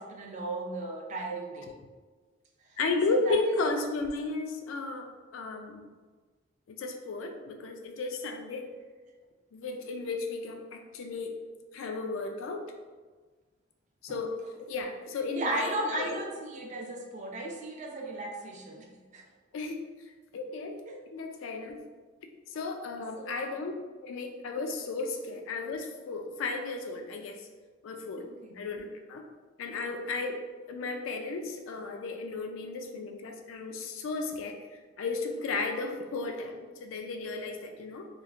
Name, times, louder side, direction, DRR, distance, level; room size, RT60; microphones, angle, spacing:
voice 1, 0.0-1.7 2.7-2.8 3.1-3.4 15.3-19.2 20.9-21.0 23.2-23.4 28.2-28.6, right 2 dB, 40° right, 1 dB, 0.4 m, -36 dB
voice 2, 2.8-5.1 5.3-5.9 6.7-8.7 9.5-11.4 11.7-12.7 14.0-14.3 14.7-16.2 19.5-19.9 20.3-20.8 21.1-21.8 22.5-23.7 24.0-27.5 27.8-28.3 28.5-29.3 29.6-34.6 35.0-38.1, left 3 dB, 90° left, 4 dB, 0.3 m, -34 dB
3.0 x 2.4 x 2.4 m, 1.4 s
head